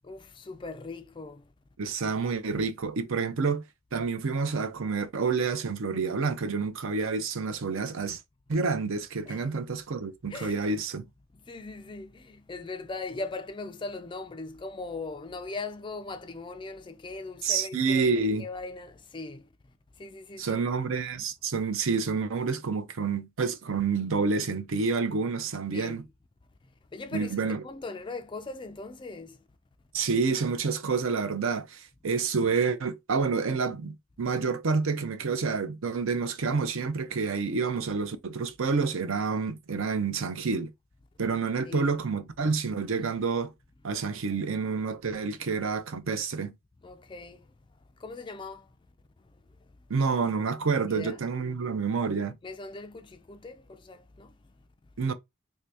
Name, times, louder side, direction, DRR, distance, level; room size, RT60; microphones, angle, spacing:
voice 1, 0.0-1.5 9.3-9.5 10.3-10.6 11.3-19.5 20.0-20.6 25.7-26.0 26.9-27.3 27.6-29.4 41.6-42.0 46.8-47.5 48.0-48.8 49.2-49.4 50.9-51.2 52.4-54.4, left 3 dB, 20° left, 0.3 m, -40 dB
voice 2, 1.8-3.6 3.9-8.2 8.5-11.0 17.4-18.4 20.4-26.0 27.1-27.6 29.9-40.7 41.2-43.5 43.8-46.5 49.9-52.3 55.0-55.1, right 4 dB, 65° right, 0.5 m, -28 dB
3.2 x 2.8 x 3.4 m
head